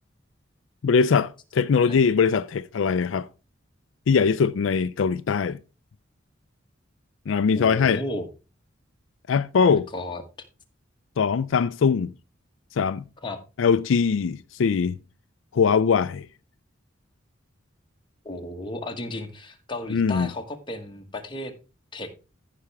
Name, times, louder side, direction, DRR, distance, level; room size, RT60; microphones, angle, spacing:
voice 1, 0.8-3.3 4.1-5.6 7.3-8.0 9.3-9.9 11.2-12.1 12.8-13.1 13.6-15.0 15.5-16.3 19.9-20.3, left 6 dB, 75° left, 0.4 m, -21 dB
voice 2, 7.5-8.3 9.9-10.2 13.2-13.4 18.2-21.6 21.9-22.1, left 1 dB, 25° left, 1.4 m, -34 dB
14.5 x 5.8 x 3.4 m
head